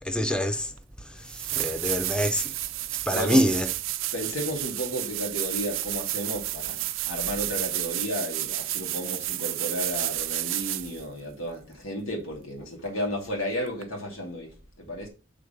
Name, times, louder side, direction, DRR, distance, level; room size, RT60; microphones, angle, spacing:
voice 1, 0.0-2.6 2.9-3.7, equal, 5° left, 0.5 m, -26 dB
sound 1, 0.8-0.9 1.3-11.0 13.8-13.9, right 16 dB, 65° right, 0.5 m, -31 dB
voice 2, 4.1-15.1, equal, 75° left, 2.5 m, -33 dB
6.6 x 3.8 x 5.1 m
head